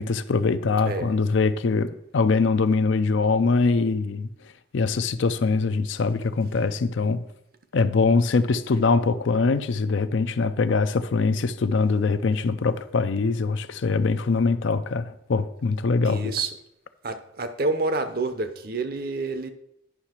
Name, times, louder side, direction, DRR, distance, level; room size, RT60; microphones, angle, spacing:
voice 1, 0.0-4.3 4.7-7.2 7.7-16.3, left 4 dB, 65° left, 0.4 m, -23 dB
voice 2, 0.8-1.2 16.0-16.5 17.0-19.5, right 3 dB, 45° right, 0.7 m, -28 dB
9.8 x 5.7 x 4.4 m
head